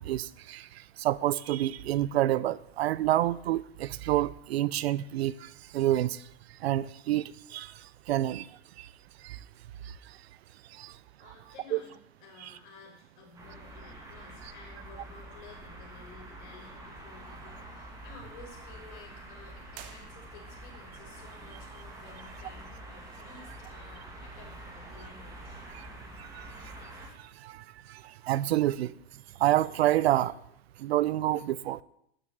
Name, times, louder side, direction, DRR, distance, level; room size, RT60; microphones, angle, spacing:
voice 1, 0.0-8.5 8.8-8.9 9.2-9.4 9.8-10.2 10.7-11.0 11.7-11.8 12.4-12.5 25.7-25.9 26.2-26.8 27.2-30.4 30.8-31.8, right 14 dB, 65° right, 0.6 m, -29 dB
voice 2, 10.8-25.6, left 4 dB, 45° left, 6.1 m, -53 dB
sound 1, 13.3-27.1, right 1 dB, 10° right, 1.9 m, -46 dB
sound 2, 19.7-20.7, right 9 dB, 40° right, 1.3 m, -50 dB
13.0 x 7.7 x 9.8 m
supercardioid pair, 175°, 33 cm